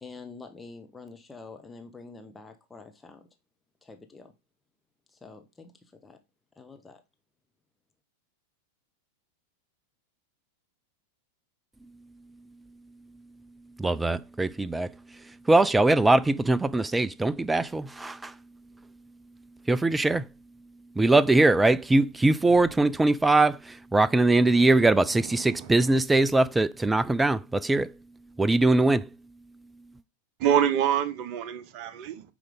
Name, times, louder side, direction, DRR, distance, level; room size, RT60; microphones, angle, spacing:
voice 1, 0.0-3.3 3.8-4.3 5.1-6.2 6.6-7.0, left 4 dB, 10° left, 1.1 m, -46 dB
voice 2, 13.8-14.9 15.5-18.3 19.7-20.3 21.0-27.9 28.4-29.1, right 2 dB, 10° right, 0.3 m, -22 dB
voice 3, 24.4-24.7 25.2-26.0 30.4-32.2, right 9 dB, 40° right, 1.0 m, -27 dB
9.1 x 5.1 x 3.8 m
figure-of-eight pair, 90°, 0 cm